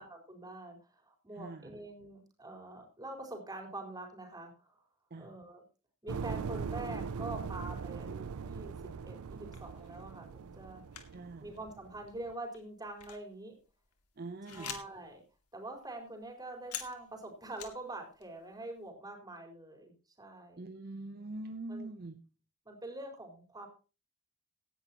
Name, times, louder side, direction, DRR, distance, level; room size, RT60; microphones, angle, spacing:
voice 1, 0.0-4.8 5.2-5.6 6.0-8.7 9.0-10.8 11.4-13.6 14.5-15.2 15.5-19.9 20.2-20.7 21.7-21.9 22.6-23.7, right 2 dB, 20° right, 2 dB, 4.3 m, -45 dB
voice 2, 1.3-1.8 5.1-5.3 11.1-11.5 14.2-14.8 20.6-22.2, right 2 dB, 45° right, 8 dB, 0.7 m, -43 dB
sound 1, 6.1-12.3, right 5 dB, 80° right, 0.5 m, -41 dB
sound 2, 9.4-10.0 10.9-11.2 11.5-11.6 12.1-15.1 15.4-15.5 15.8-17.9 18.1-18.7, left 9 dB, 85° left, 2.2 m, -47 dB
17.5 x 11.0 x 3.0 m, 0.34 s
head